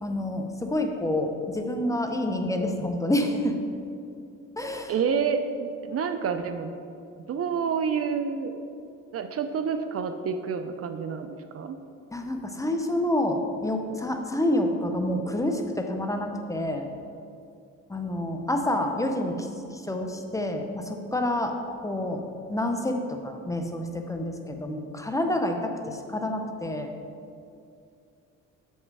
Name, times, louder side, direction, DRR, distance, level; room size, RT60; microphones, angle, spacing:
voice 1, 0.0-3.6 4.6-4.9 12.1-16.9 17.9-22.2 22.5-26.9, left 1 dB, 10° left, 4 dB, 0.7 m, -28 dB
voice 2, 4.9-6.7 7.3-8.5 9.1-11.8, right 6 dB, 50° right, 8 dB, 0.5 m, -28 dB
7.0 x 5.5 x 4.7 m, 2.5 s
cardioid pair, 90°, 30 cm